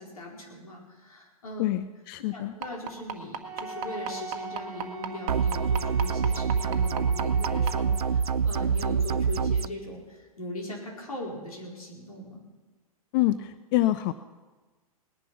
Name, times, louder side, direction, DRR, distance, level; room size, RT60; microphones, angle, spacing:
voice 1, 0.0-1.7 2.3-12.4, left 1 dB, 70° left, -1 dB, 4.6 m, -40 dB
voice 2, 1.6-2.5 13.1-14.1, left 15 dB, 35° left, 13 dB, 0.5 m, -26 dB
sound 1, 2.6-7.7 8.8-8.9 9.3-9.4 9.8-9.9, right 8 dB, 35° right, 1.4 m, -33 dB
Wind instrument woodwind instrument, 3.4-8.3, right 1 dB, 15° right, 4.4 m, -41 dB
sound 2, 5.3-9.7, right 6 dB, 80° right, 0.4 m, -26 dB
19.5 x 10.5 x 5.8 m, 1.3 s
figure-of-eight pair, 105°, 19 cm